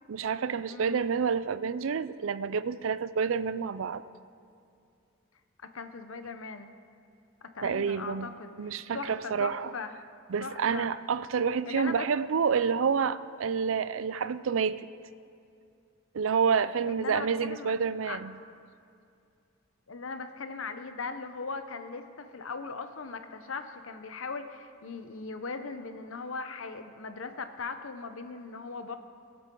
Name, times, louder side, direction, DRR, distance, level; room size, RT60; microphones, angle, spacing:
voice 1, 0.1-4.0 7.6-8.3 8.6-9.7 10.3-14.9 16.1-18.4, right 6 dB, 75° right, 15 dB, 0.4 m, -28 dB
voice 2, 0.7-1.1 5.7-6.7 7.4-9.9 10.4-10.9 11.6-12.1 16.8-17.7 18.1-18.2 19.9-29.0, left 4 dB, 90° left, 8 dB, 0.9 m, -39 dB
22.5 x 8.7 x 3.8 m, 2.5 s
head